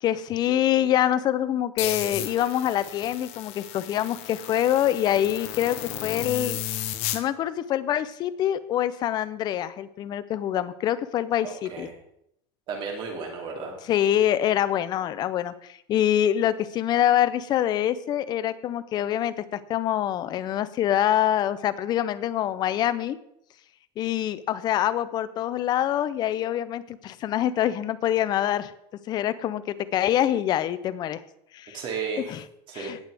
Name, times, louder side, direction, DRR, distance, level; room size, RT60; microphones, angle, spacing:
voice 1, 0.0-6.8 7.1-11.9 13.9-15.5 15.9-23.2 24.0-28.7 29.1-31.2 31.5-31.8 32.3-32.4 32.7-33.0, left 11 dB, 30° left, 14 dB, 0.6 m, -25 dB
sound 1, 1.8-7.2, left 13 dB, 50° left, 1.0 m, -34 dB
voice 2, 11.4-11.9 12.7-13.7 31.7-32.2 32.7-33.0, right 5 dB, 35° right, 1 dB, 2.9 m, -33 dB
18.0 x 6.7 x 3.5 m, 0.75 s
cardioid pair, 160°, 14 cm